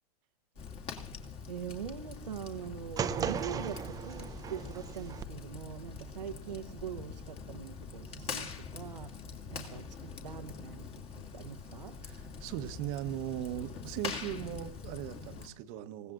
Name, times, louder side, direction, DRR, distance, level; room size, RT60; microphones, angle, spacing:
Fire, 0.6-15.5, left 5 dB, 30° left, 2.3 m, -44 dB
voice 1, 1.5-10.9 11.2-11.9, right 8 dB, 80° right, 7 dB, 0.9 m, -43 dB
sound 1, 3.0-5.2, right 7 dB, 15° right, 0.7 m, -36 dB
voice 2, 12.0-16.1, right 12 dB, 40° right, 11 dB, 1.0 m, -39 dB
28.0 x 16.5 x 2.5 m, 0.73 s
hypercardioid pair, 105°, 21 cm